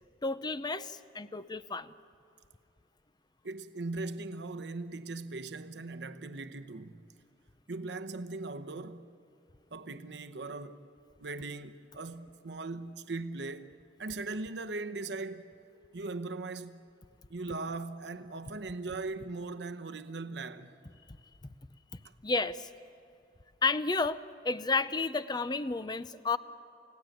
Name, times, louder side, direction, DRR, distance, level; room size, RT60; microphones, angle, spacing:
voice 1, 0.2-1.9 22.2-22.7 23.6-26.4, left 3 dB, 25° left, 0.6 m, -31 dB
voice 2, 3.4-7.0 7.7-9.1 9.7-10.8 11.2-13.7 14.0-15.5 15.9-16.9 17.3-20.7, right 3 dB, 75° right, 0.9 m, -39 dB
29.5 x 17.0 x 9.1 m
head